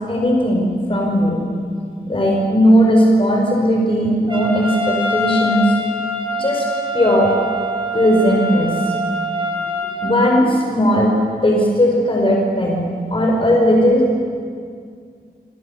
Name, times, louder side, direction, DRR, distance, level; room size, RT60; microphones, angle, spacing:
voice 1, 0.1-1.4 2.0-5.7 6.4-6.6 6.9-7.3 7.9-8.9 10.0-11.1 11.4-12.8 13.1-14.2, equal, 35° left, -1 dB, 5.0 m, -16 dB
Trumpet, 4.3-10.3, equal, 30° right, 4.3 m, -24 dB
29.0 x 27.0 x 6.8 m, 2.2 s
wide cardioid pair, 110°, 17 cm